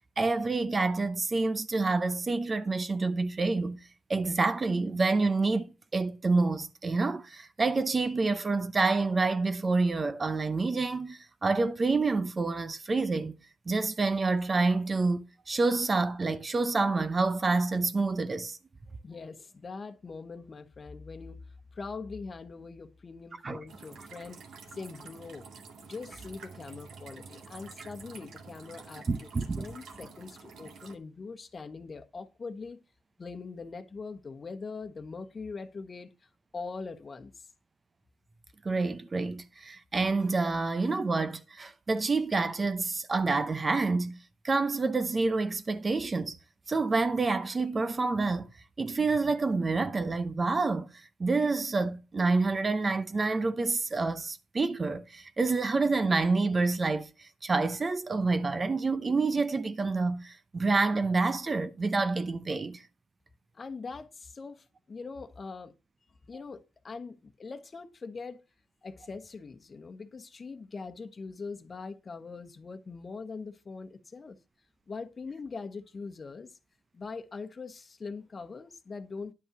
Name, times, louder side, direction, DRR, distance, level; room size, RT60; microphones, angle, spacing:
voice 1, 0.2-3.8 4.1-5.7 5.9-13.3 13.7-18.6 23.4-23.6 29.1-29.6 38.6-44.2 44.4-46.4 46.7-48.5 48.8-62.8, right 3 dB, 30° right, 0.8 m, -28 dB
voice 2, 19.0-21.4 21.7-24.4 24.7-25.5 25.8-29.3 29.6-32.8 33.2-36.1 36.5-37.5 63.5-65.7 66.3-68.4 68.8-74.4 74.9-76.6 76.9-79.3, left 4 dB, 35° left, 1.2 m, -42 dB
sound 1, 23.7-31.0, right 4 dB, 70° right, 2.2 m, -49 dB
10.5 x 5.4 x 6.0 m
cardioid pair, 90°, 0 cm